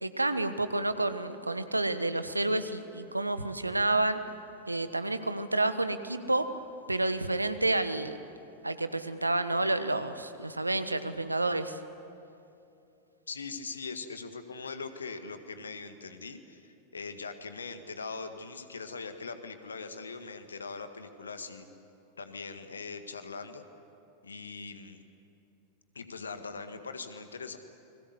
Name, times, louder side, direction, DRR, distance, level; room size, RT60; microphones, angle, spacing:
voice 1, 0.0-4.2 4.7-6.4 6.9-8.2 8.6-11.8, right 2 dB, 85° right, 11 dB, 1.2 m, -29 dB
voice 2, 13.3-21.7 22.2-23.7 24.2-25.0 26.0-27.6, left 4 dB, 75° left, 8 dB, 1.8 m, -41 dB
29.5 x 21.5 x 8.1 m, 2.7 s
figure-of-eight pair, 90°, 0 cm